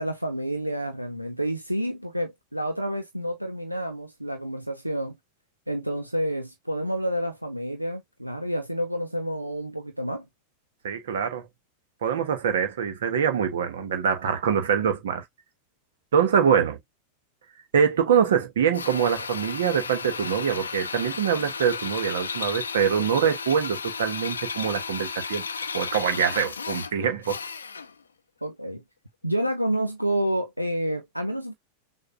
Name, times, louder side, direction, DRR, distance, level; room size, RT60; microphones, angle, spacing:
voice 1, 0.0-5.2 5.7-10.2 28.4-28.8 29.2-31.5, equal, 90° right, 0.7 m, -29 dB
voice 2, 10.8-11.5 12.0-15.2 16.1-16.8 17.7-25.4 25.7-27.4, right 7 dB, 60° right, 1.3 m, -24 dB
Drill, 18.7-28.0, left 5 dB, 75° left, 0.5 m, -34 dB
6.5 x 2.6 x 2.4 m
figure-of-eight pair, 90°, 0 cm